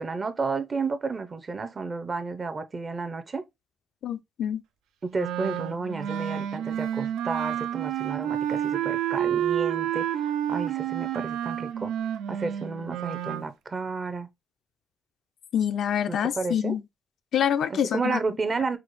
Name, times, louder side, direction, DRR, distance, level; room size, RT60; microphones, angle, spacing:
voice 1, 0.0-3.4 5.1-11.9 12.3-14.3 16.1-16.7 17.7-18.8, right 4 dB, 35° right, 0.5 m, -32 dB
voice 2, 4.0-4.6 15.5-16.8 17.3-18.2, left 9 dB, 70° left, 0.3 m, -26 dB
Wind instrument woodwind instrument, 5.1-13.5, right 10 dB, 90° right, 0.3 m, -29 dB
4.8 x 2.0 x 3.0 m
cardioid pair, 90°, 0 cm